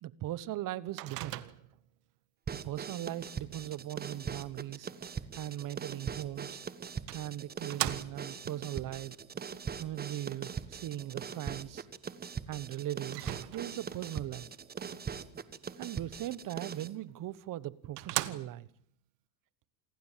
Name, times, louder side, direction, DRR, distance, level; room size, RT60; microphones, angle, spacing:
voice 1, 0.0-1.4 2.5-6.6 7.1-9.2 9.8-11.9 12.5-14.5 15.8-18.7, right 13 dB, 40° right, 1.2 m, -39 dB
Microwave oven, 1.0-1.9 6.2-6.3 7.1-8.4 13.1-14.0 17.1-17.2 17.6-17.7 18.0-18.8, right 18 dB, 75° right, 1.7 m, -38 dB
sound 1, 2.5-16.9, right 6 dB, 20° right, 1.2 m, -41 dB
28.5 x 20.0 x 7.5 m
supercardioid pair, 115°, 48 cm